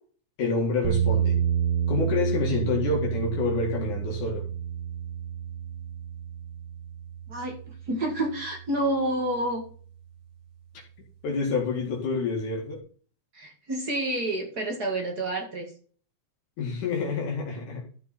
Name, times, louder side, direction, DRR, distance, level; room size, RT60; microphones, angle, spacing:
voice 1, 0.4-1.4 1.9-4.4 11.2-12.8 16.6-17.8, left 4 dB, 70° left, -1 dB, 3.5 m, -28 dB
sound 1, 0.8-8.9, right 8 dB, 55° right, 1.9 m, -29 dB
voice 2, 7.3-9.6 13.3-15.7, right 1 dB, 35° right, 3 dB, 2.3 m, -29 dB
13.5 x 5.6 x 4.3 m, 0.43 s
omnidirectional pair, 3.7 m